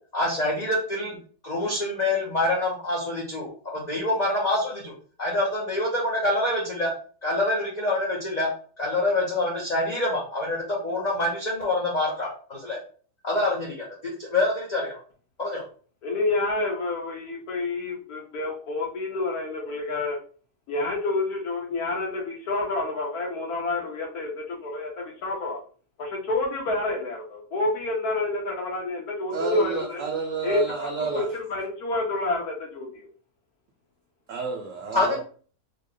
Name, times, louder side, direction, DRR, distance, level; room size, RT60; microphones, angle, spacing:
voice 1, 0.1-1.2 1.4-4.9 5.2-6.9 7.2-8.5 8.8-12.8 13.2-15.0 15.4-15.6 34.9-35.2, left 2 dB, 50° left, 0.5 m, -26 dB
voice 2, 16.0-20.2 20.7-25.6 26.0-30.0 30.4-33.1, left 2 dB, 70° left, 1.3 m, -28 dB
voice 3, 29.3-31.3 34.3-35.2, right 5 dB, 65° right, 0.8 m, -30 dB
3.4 x 2.1 x 3.7 m
omnidirectional pair, 1.7 m